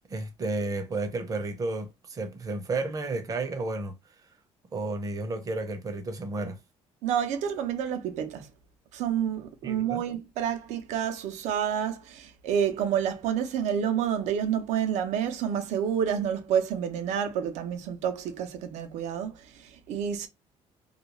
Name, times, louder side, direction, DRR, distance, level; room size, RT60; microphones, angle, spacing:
voice 1, 0.1-3.9 4.7-6.6 9.6-10.0, right 2 dB, 30° right, 0.6 m, -32 dB
voice 2, 7.0-8.5 8.9-20.3, right 8 dB, 75° right, 0.6 m, -29 dB
2.3 x 2.3 x 2.9 m
cardioid pair, 135°, 12 cm